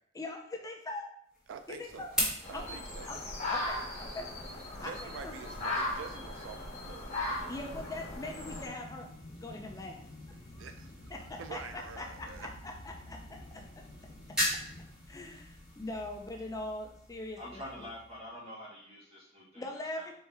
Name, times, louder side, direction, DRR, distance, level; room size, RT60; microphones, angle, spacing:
voice 1, 0.2-1.1 1.7-2.1 2.5-2.8 3.1-5.4 7.5-9.1 9.4-10.0 10.5-10.7 11.1-12.5 12.8-13.6 15.1-17.6 19.5-20.2, left 2 dB, 20° left, 2 dB, 0.4 m, -42 dB
sound 1, 1.3-18.3, left 1 dB, 5° right, 1.8 m, -42 dB
voice 2, 1.5-2.1 2.5-3.1 4.7-7.5 10.6-12.5, right 6 dB, 85° right, 8 dB, 0.3 m, -47 dB
sound 2, 2.4-8.7, left 1 dB, 40° left, 1.3 m, -38 dB
Aircraft, 7.4-16.9, left 1 dB, 65° left, 0.6 m, -51 dB
voice 3, 17.4-20.0, left 1 dB, 30° right, -6 dB, 1.8 m, -46 dB
4.4 x 3.3 x 3.3 m, 0.70 s
head